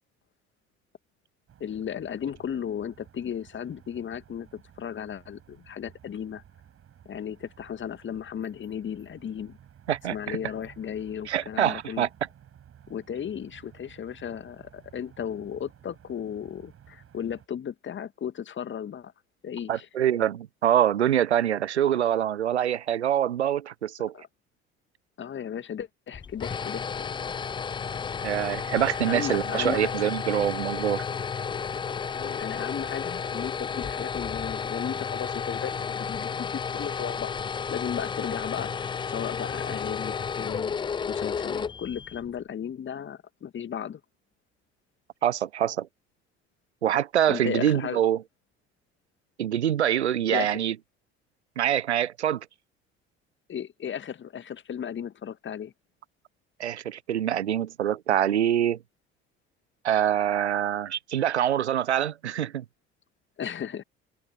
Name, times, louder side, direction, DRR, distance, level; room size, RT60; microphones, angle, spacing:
sound 1, 1.5-17.5, right 9 dB, 40° right, 7.9 m, -54 dB
voice 1, 1.6-6.4 7.1-9.6 10.1-12.1 12.9-19.1 19.4-19.9 24.1-24.2 25.2-27.2 29.1-29.9 32.1-37.3 37.7-40.8 41.1-44.0 47.3-48.0 50.3-50.6 53.5-55.7 63.4-63.8, left 8 dB, 35° left, 2.0 m, -35 dB
voice 2, 9.9-10.4 11.3-12.1 19.7-24.1 28.2-31.1 45.2-45.9 46.8-48.2 49.4-50.7 51.6-52.5 56.6-58.8 59.8-62.6, right 10 dB, 80° right, 0.7 m, -25 dB
sound 2, 26.1-42.3, left 6 dB, 15° left, 0.4 m, -32 dB
figure-of-eight pair, 55°, 33 cm